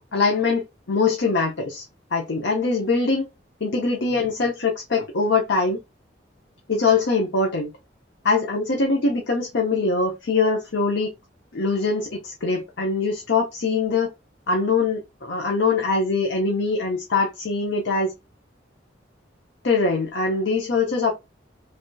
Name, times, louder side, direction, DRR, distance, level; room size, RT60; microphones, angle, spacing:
voice 1, 0.1-1.8 2.1-3.2 3.6-5.8 6.7-7.7 8.2-11.1 11.5-14.1 14.5-18.1 19.6-21.1, left 4 dB, 90° left, 0.7 m, -22 dB
3.3 x 2.7 x 2.2 m
head